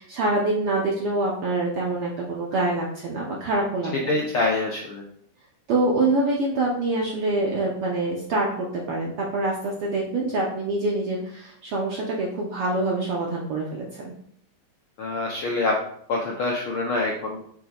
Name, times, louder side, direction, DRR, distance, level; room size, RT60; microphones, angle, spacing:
voice 1, 0.0-3.9 5.7-14.1, right 2 dB, 70° right, -3 dB, 1.3 m, -25 dB
voice 2, 4.1-5.0 15.0-15.7 16.1-17.4, left 2 dB, 75° left, -2 dB, 1.3 m, -25 dB
7.1 x 6.6 x 2.4 m, 0.65 s
omnidirectional pair, 3.5 m